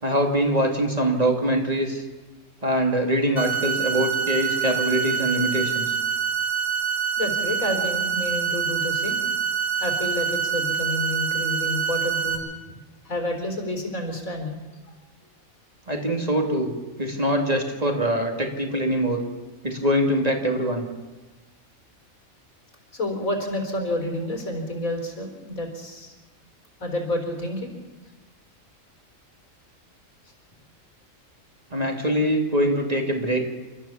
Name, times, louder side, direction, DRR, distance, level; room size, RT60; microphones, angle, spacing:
voice 1, 0.0-2.0 2.6-6.0 15.9-16.7 17.0-19.2 19.6-20.8 31.7-33.4, equal, 30° right, 2 dB, 2.5 m, -23 dB
sound 1, 3.4-12.4, right 7 dB, 40° left, 4.7 m, -26 dB
voice 2, 7.2-9.2 9.8-12.4 13.0-14.6 22.9-26.1 26.8-27.7, left 1 dB, 85° left, 3 dB, 4.3 m, -29 dB
28.5 x 13.0 x 7.1 m, 1.2 s
omnidirectional pair, 1.4 m